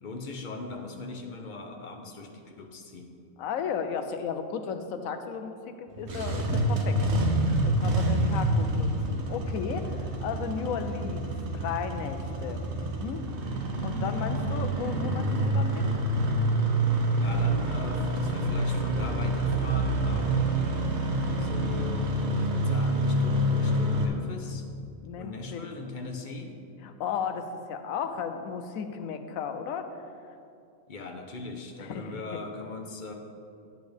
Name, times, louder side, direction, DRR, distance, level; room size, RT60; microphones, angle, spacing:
voice 1, 0.0-3.1 17.2-20.5 21.4-22.1 22.4-24.6 25.2-26.6 30.9-33.1, left 3 dB, 45° left, 4 dB, 0.8 m, -40 dB
voice 2, 3.4-7.0 7.6-13.2 13.8-15.9 25.0-25.7 26.8-29.9 31.8-32.2, left 6 dB, 80° left, 8 dB, 1.1 m, -35 dB
Engine starting, 5.9-24.1, right 1 dB, 55° right, 1.1 m, -27 dB
10.5 x 8.3 x 3.4 m, 2.5 s
omnidirectional pair, 1.4 m